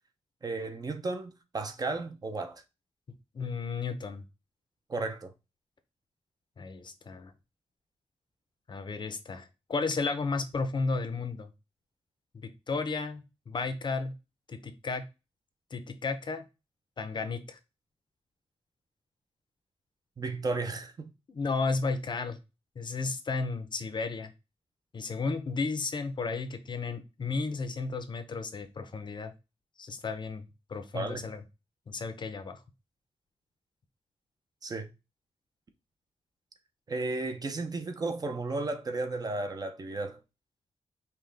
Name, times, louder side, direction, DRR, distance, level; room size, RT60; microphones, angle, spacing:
voice 1, 0.4-2.6 4.9-5.3 20.2-21.1 30.9-31.3 34.6-34.9 36.9-40.2, right 3 dB, 35° right, 0.6 m, -34 dB
voice 2, 3.3-4.2 6.6-7.3 8.7-11.5 12.3-14.1 14.5-15.0 15.7-16.4 17.0-17.6 21.3-22.4 22.8-24.3 24.9-29.3 29.8-31.4 31.9-32.6, left 4 dB, 45° left, 0.6 m, -33 dB
5.6 x 2.2 x 3.3 m
wide cardioid pair, 150°, 11 cm